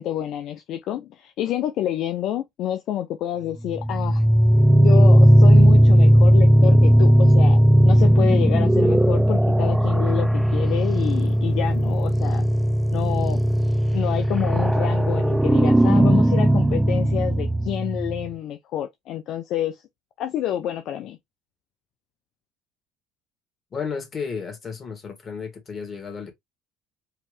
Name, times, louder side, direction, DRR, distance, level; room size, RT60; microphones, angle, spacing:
voice 1, 0.0-4.2 4.8-12.4 12.9-13.4 13.9-19.8 20.2-21.2, left 11 dB, 65° left, 0.6 m, -28 dB
sound 1, 3.7-18.3, equal, 10° right, 0.5 m, -17 dB
voice 2, 23.7-26.3, left 5 dB, 40° left, 2.6 m, -33 dB
4.6 x 3.2 x 3.4 m
supercardioid pair, 75°, 0 cm